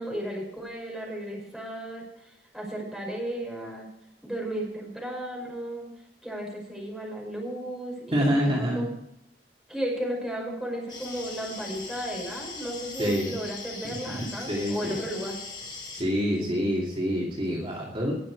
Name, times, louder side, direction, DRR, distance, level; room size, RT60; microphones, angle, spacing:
voice 1, 0.0-3.9 4.2-5.9 6.2-8.9 9.7-15.4 16.4-16.6, right 1 dB, ahead, -2 dB, 5.4 m, -34 dB
voice 2, 8.1-8.9 13.0-13.3 13.8-15.0 15.9-18.2, equal, 35° right, -4 dB, 2.7 m, -27 dB
sound 1, 10.9-16.0, left 4 dB, 25° left, 4.1 m, -40 dB
20.0 x 7.6 x 4.8 m, 0.82 s
head